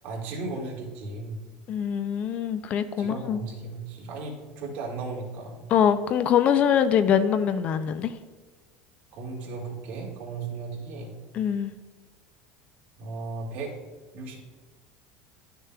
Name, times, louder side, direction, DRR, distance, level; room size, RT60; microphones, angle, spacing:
voice 1, 0.0-1.4 3.0-5.7 9.1-11.2 13.0-13.7 14.1-14.4, right 3 dB, 50° right, -1 dB, 1.8 m, -36 dB
voice 2, 1.7-3.4 5.7-8.1 11.3-11.7, left 8 dB, 35° left, 12 dB, 0.4 m, -23 dB
12.0 x 6.6 x 2.3 m, 1.4 s
cardioid pair, 160°, 4 cm